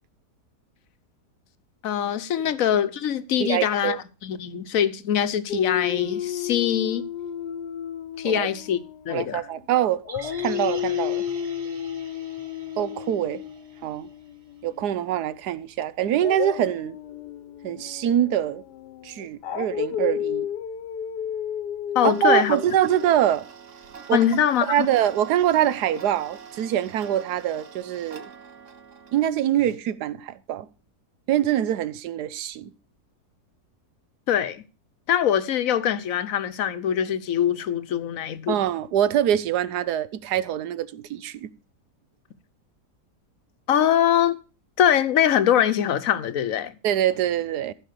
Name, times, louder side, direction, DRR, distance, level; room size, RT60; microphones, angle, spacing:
voice 1, 1.8-4.0 4.2-7.0 8.2-8.8 9.0-9.4 21.9-22.6 24.1-24.9 34.3-34.6 35.1-38.6 43.7-44.4 44.8-46.7, left 9 dB, 60° left, 1.2 m, -23 dB
voice 2, 3.4-4.0 8.2-8.5 9.1-11.2 12.8-13.4 13.8-14.1 14.6-17.0 17.6-18.6 19.0-20.5 22.0-23.5 24.1-24.2 24.7-28.3 29.1-30.7 31.3-32.7 38.5-41.5 46.8-47.7, right 11 dB, 75° right, 1.3 m, -24 dB
Dog, 5.5-9.7 10.0-15.0 16.1-23.1, left 10 dB, 85° left, 1.6 m, -32 dB
sound 1, 10.1-14.3 14.6-14.7, right 4 dB, 30° right, 0.6 m, -45 dB
Tick-tock, 22.1-29.3, right 6 dB, 50° right, 1.4 m, -44 dB
15.0 x 5.6 x 6.6 m
omnidirectional pair, 1.8 m